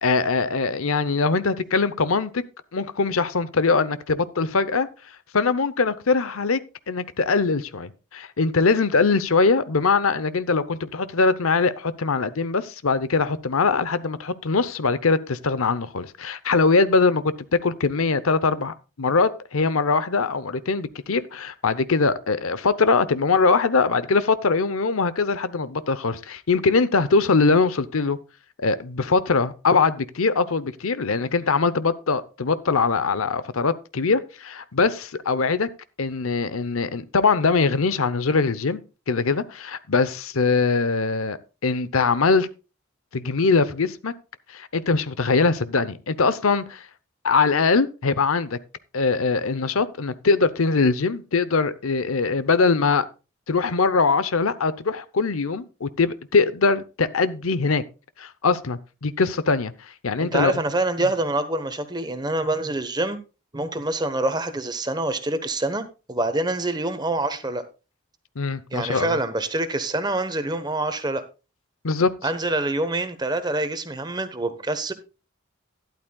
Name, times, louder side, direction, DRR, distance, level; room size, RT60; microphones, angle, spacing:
voice 1, 0.0-2.4 2.7-4.9 5.3-6.6 6.9-17.3 17.6-28.2 28.6-35.7 36.0-38.8 39.1-42.5 43.1-44.1 44.5-46.9 47.2-48.6 48.9-53.1 53.5-57.8 58.2-59.7 60.0-60.6 68.4-69.2 71.8-72.1, left 4 dB, 85° left, 0.8 m, -22 dB
voice 2, 60.2-63.2 63.5-67.6 68.7-71.2 72.2-74.9, right 2 dB, 20° right, 1.1 m, -26 dB
12.5 x 11.5 x 2.3 m
head